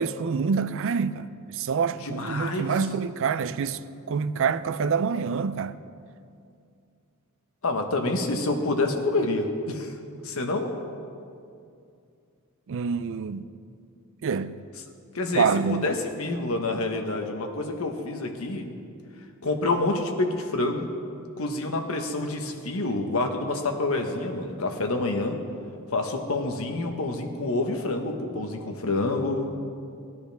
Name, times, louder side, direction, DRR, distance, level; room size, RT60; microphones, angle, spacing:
voice 1, 0.0-3.8 4.1-5.7 12.7-13.5 14.2-14.5 15.3-15.9, right 5 dB, 60° right, 0.4 m, -26 dB
voice 2, 2.0-2.7 7.6-9.9 10.2-10.7 15.1-18.7 19.4-20.8 21.4-25.4 25.9-29.5, left 2 dB, 70° left, 1.2 m, -27 dB
18.0 x 11.0 x 3.5 m
head